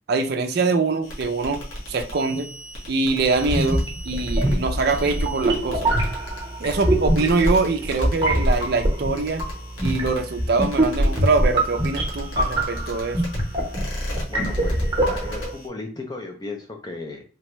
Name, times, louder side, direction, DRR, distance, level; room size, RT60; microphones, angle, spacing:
voice 1, 0.1-2.5 2.9-5.9 6.6-9.4 9.8-13.2, right 3 dB, 50° right, 0.4 m, -23 dB
sound 1, 1.0-15.7, equal, 85° left, 1.1 m, -37 dB
sound 2, 3.4-15.5, right 1 dB, 25° right, 0.8 m, -24 dB
voice 2, 14.3-17.2, left 2 dB, 20° left, 0.4 m, -35 dB
3.4 x 2.1 x 2.9 m
head